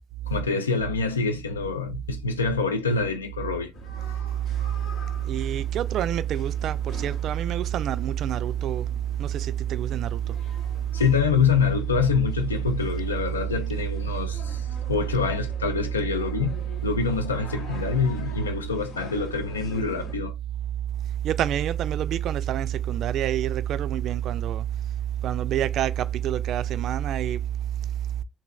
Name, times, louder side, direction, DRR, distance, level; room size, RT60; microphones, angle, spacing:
voice 1, 0.2-3.7 10.9-20.3, left 5 dB, 85° left, 0.3 m, -26 dB
sound 1, 3.7-20.1, left 3 dB, 65° left, 0.8 m, -45 dB
voice 2, 5.3-8.9 9.2-10.2 21.2-24.6 25.2-27.4, right 11 dB, 60° right, 0.3 m, -27 dB
4.0 x 2.7 x 2.3 m
figure-of-eight pair, 40°, 0 cm